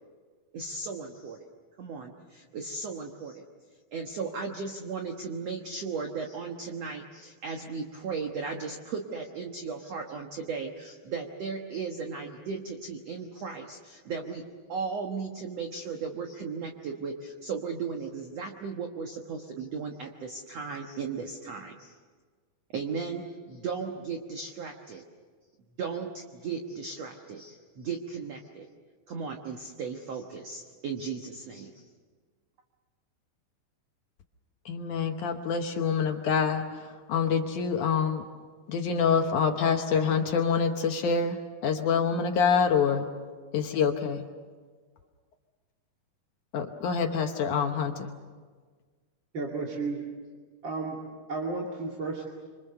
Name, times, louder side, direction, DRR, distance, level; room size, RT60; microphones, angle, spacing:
voice 1, 0.5-1.5 1.8-3.5 3.9-14.4 14.7-22.0 22.7-25.0 25.8-28.7 29.1-31.8, right 5 dB, 60° right, 3 dB, 1.8 m, -36 dB
voice 2, 34.7-38.2 38.7-41.4 41.6-43.1 43.5-44.2 46.5-48.1, left 6 dB, 65° left, 4 dB, 2.1 m, -26 dB
voice 3, 49.3-50.0 50.6-51.0 51.3-52.3, right 3 dB, 35° right, -1 dB, 2.5 m, -32 dB
26.0 x 26.0 x 6.8 m, 1.5 s
omnidirectional pair, 4.6 m